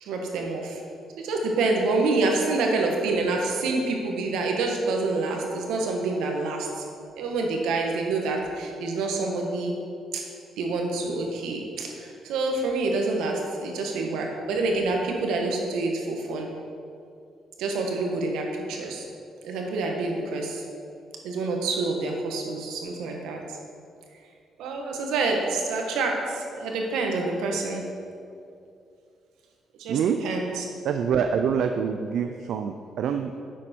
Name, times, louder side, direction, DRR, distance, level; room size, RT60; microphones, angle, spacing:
voice 1, 0.0-0.8 1.2-6.8 7.1-9.7 10.1-10.2 10.6-16.5 17.6-19.1 19.4-20.6 21.2-23.4 24.6-27.8 29.8-30.7, right 3 dB, 90° right, 1 dB, 1.5 m, -27 dB
voice 2, 29.9-30.2 30.8-33.4, right 7 dB, 75° right, 7 dB, 0.4 m, -26 dB
9.9 x 7.3 x 4.5 m, 2.4 s
cardioid pair, 90°, 0 cm